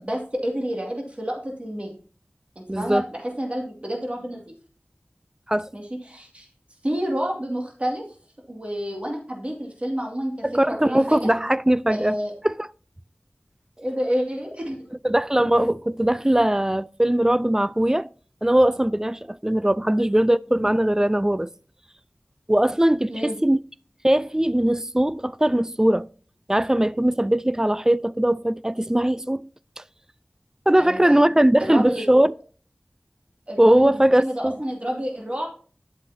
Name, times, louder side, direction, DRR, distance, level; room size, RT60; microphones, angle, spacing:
voice 1, 0.0-1.9 2.6-4.5 5.7-6.5 6.8-8.0 8.5-11.3 11.9-12.3 13.8-14.9 19.9-20.1 23.1-23.4 30.8-31.2 31.6-32.2 33.5-35.5, equal, 35° right, 2.2 m, -29 dB
voice 2, 2.7-3.0 5.5-5.7 10.4-12.2 12.4-12.5 15.0-18.1 18.4-21.5 22.5-23.6 24.0-26.1 26.5-29.5 29.8-29.9 30.7-32.3 33.6-34.5, right 1 dB, 15° right, 0.3 m, -20 dB
10.0 x 8.0 x 2.7 m
wide cardioid pair, 50°, 4 cm